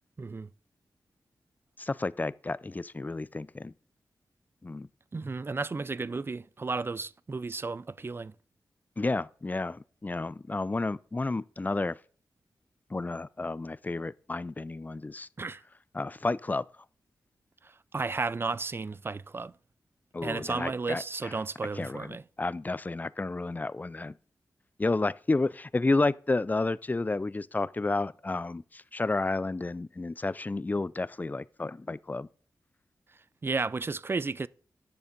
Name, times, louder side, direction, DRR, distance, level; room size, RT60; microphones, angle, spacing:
voice 1, 0.2-0.5 5.1-8.3 15.4-15.6 17.6-19.5 20.2-22.2 33.4-34.5, right 4 dB, 35° right, 0.4 m, -33 dB
voice 2, 1.8-3.7 4.6-4.9 9.0-12.0 12.9-15.3 15.9-16.7 20.1-21.0 21.8-24.1 24.8-32.3, left 3 dB, 25° left, 0.4 m, -31 dB
10.0 x 6.9 x 5.2 m
cardioid pair, 65°, 7 cm